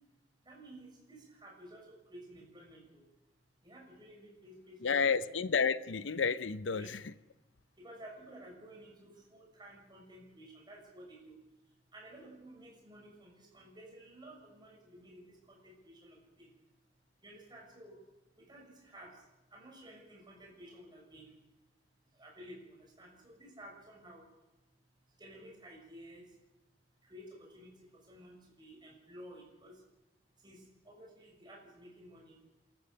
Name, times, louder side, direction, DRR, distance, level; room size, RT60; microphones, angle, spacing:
voice 1, 0.4-3.0 3.6-5.3 6.6-6.9 7.8-11.3 11.9-16.5 17.2-18.0 18.4-19.2 19.5-21.3 22.1-24.3 25.2-26.3 27.0-29.8 30.4-32.4, right 1 dB, 25° right, -1 dB, 6.5 m, -53 dB
voice 2, 4.8-7.1, left 5 dB, 90° left, 14 dB, 0.7 m, -31 dB
27.5 x 14.0 x 7.0 m, 1.0 s
head